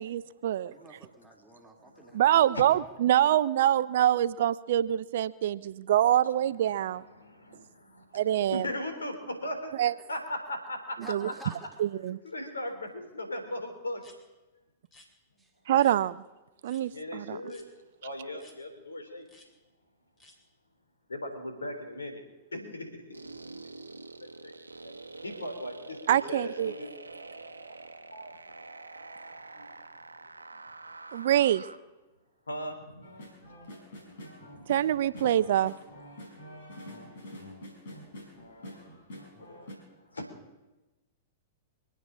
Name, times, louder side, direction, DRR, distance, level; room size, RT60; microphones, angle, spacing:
voice 1, 0.0-0.7 2.1-7.0 8.1-8.6 9.8-9.9 11.1-11.3 11.8-12.2 15.7-16.2 16.6-17.4 26.1-26.7 31.1-31.6 34.7-35.7, right 11 dB, 55° right, 16 dB, 0.5 m, -25 dB
voice 2, 0.7-2.7 11.0-11.7 15.4-15.5, right 2 dB, 5° right, 0 dB, 2.6 m, -51 dB
voice 3, 1.8-2.2 6.7-9.7 10.1-11.0 11.2-11.3 11.9-14.0 16.9-17.6 18.0-19.2 21.1-22.2 22.5-23.2 24.2-24.5 24.8-24.9 25.2-26.9 27.5-27.8 28.1-28.5 29.5-29.7 30.5-30.6 32.5-33.0 34.1-34.2 34.5-34.7 35.2-35.3 39.4-39.8 40.0-40.2, left 1 dB, 75° left, 5 dB, 3.5 m, -39 dB
sound 1, 14.0-14.2 14.8-15.1 15.8-16.0 16.6-16.8 17.5-17.7 18.4-18.6 19.2-19.5 20.2-20.4, left 2 dB, 20° left, 3.2 m, -56 dB
sound 2, 23.1-31.8, right 3 dB, 80° right, 1.0 m, -46 dB
sound 3, 33.0-39.7, equal, 60° left, 4.9 m, -47 dB
25.5 x 8.9 x 6.3 m, 1.1 s
figure-of-eight pair, 100°, 0 cm